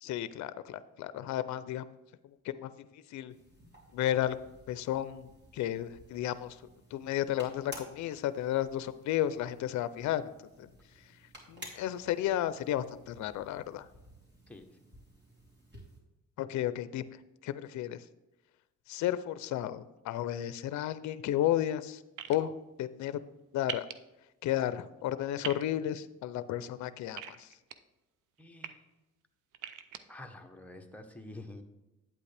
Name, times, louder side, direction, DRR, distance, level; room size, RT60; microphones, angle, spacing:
voice 1, 0.0-1.8 2.2-3.3 3.9-6.6 6.9-10.3 10.6-10.7 11.5-13.9 16.4-17.0 17.4-18.0 18.9-22.0 22.3-23.2 23.5-23.9 24.4-27.5, left 12 dB, 70° left, 14 dB, 0.5 m, -33 dB
sound 1, 3.3-16.0, equal, 35° right, 3.0 m, -54 dB
voice 2, 14.5-14.8 28.4-28.8 30.1-31.6, left 2 dB, 5° left, 3 dB, 1.0 m, -48 dB
sound 2, 22.2-22.4 23.7-23.9 25.4-25.6 27.2-27.7 28.4-28.7 29.5-30.0, right 10 dB, 90° right, 0.6 m, -39 dB
8.6 x 8.4 x 3.4 m, 1.0 s
cardioid pair, 90°, 30 cm